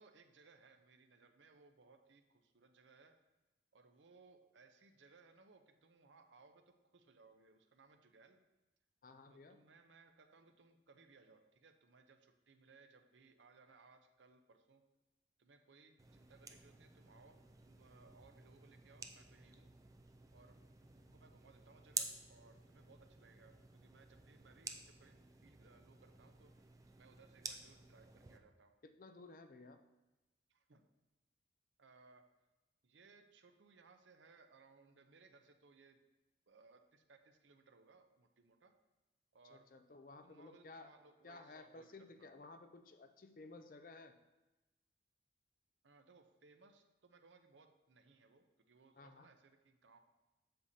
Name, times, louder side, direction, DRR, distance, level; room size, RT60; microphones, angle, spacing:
voice 1, 0.0-3.1 3.7-8.4 9.3-14.8 15.4-19.7 20.3-20.6 21.0-26.5 27.0-28.7 30.5-30.8 31.8-32.2 32.8-36.0 36.5-38.7 39.3-39.7 40.2-42.4 45.8-50.0, right 4 dB, 85° right, 7 dB, 0.7 m, -65 dB
voice 2, 9.0-9.6 28.8-29.8 39.5-40.9 41.2-44.2 49.0-49.3, left 3 dB, 50° left, 8 dB, 0.5 m, -56 dB
sound 1, 16.0-28.4, right 5 dB, 20° right, 0.3 m, -51 dB
7.8 x 6.7 x 2.8 m, 1.0 s
head